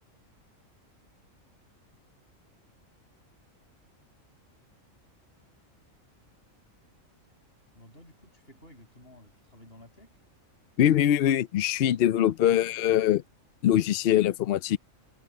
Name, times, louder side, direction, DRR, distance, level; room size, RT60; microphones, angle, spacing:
voice 1, 7.7-10.1, left 1 dB, 45° left, 7.4 m, -53 dB
voice 2, 10.8-13.2 13.6-14.8, left 11 dB, 65° left, 0.6 m, -23 dB
omnidirectional pair, 1.4 m